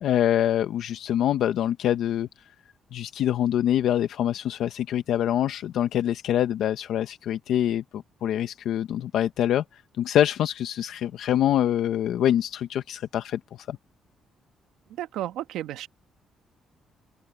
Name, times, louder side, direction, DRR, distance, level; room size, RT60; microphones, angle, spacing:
voice 1, 0.0-2.3 2.9-13.8, left 11 dB, 75° left, 0.9 m, -25 dB
voice 2, 15.0-15.9, right 13 dB, 90° right, 1.2 m, -32 dB
open air
cardioid pair, 90°, 0 cm